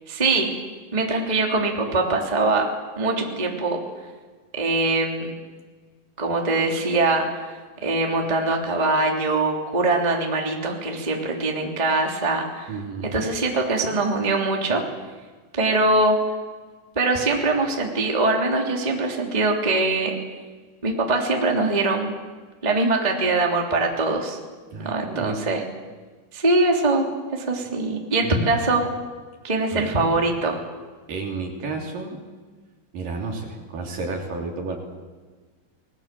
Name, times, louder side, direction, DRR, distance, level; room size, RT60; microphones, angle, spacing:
voice 1, 0.1-0.5 0.9-2.7 3.0-3.8 4.6-5.3 6.2-7.4 7.8-12.7 13.1-14.8 15.5-16.2 16.9-20.1 20.8-22.1 22.6-24.4 24.8-25.6 26.3-28.9 29.4-30.6, right 2 dB, 10° right, 0 dB, 2.5 m, -22 dB
voice 2, 12.7-13.1 24.7-25.4 28.2-28.5 29.7-29.9 31.1-32.2 32.9-34.8, right 3 dB, 55° right, 1 dB, 4.6 m, -31 dB
29.0 x 20.5 x 7.7 m, 1.4 s
omnidirectional pair, 5.0 m